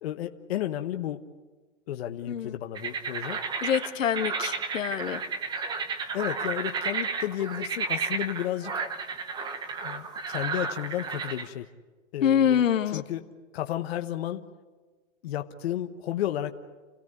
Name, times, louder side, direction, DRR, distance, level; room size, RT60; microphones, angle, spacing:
voice 1, 0.0-1.3 1.9-3.4 6.1-8.8 9.8-11.7 12.1-13.3 13.5-14.5 15.2-16.5, left 12 dB, 55° left, 7 dB, 1.1 m, -32 dB
sound 1, 2.8-11.5, right 5 dB, 10° right, 0.9 m, -32 dB
voice 2, 3.6-5.2 12.2-13.0, left 9 dB, 85° left, 9 dB, 1.6 m, -25 dB
28.5 x 16.5 x 9.7 m, 1.3 s
hypercardioid pair, 150°, 38 cm